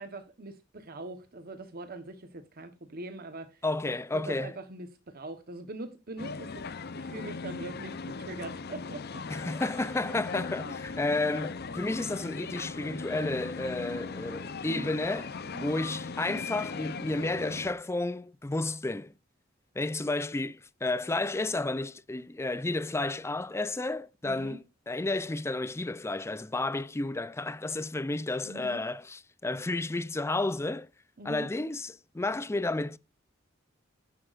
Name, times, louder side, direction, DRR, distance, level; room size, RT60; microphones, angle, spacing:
voice 1, 0.0-9.2 10.7-10.8 14.6-14.9 15.4-15.7 24.2-24.6 28.4-28.8 31.2-31.5, right 2 dB, 50° right, 1.1 m, -43 dB
voice 2, 3.6-4.5 9.3-15.3 15.6-19.1 19.8-30.9 31.2-33.0, left 2 dB, 15° left, 0.4 m, -32 dB
sound 1, 6.2-17.7, left 4 dB, 55° left, 0.7 m, -39 dB
11.0 x 10.5 x 2.5 m
head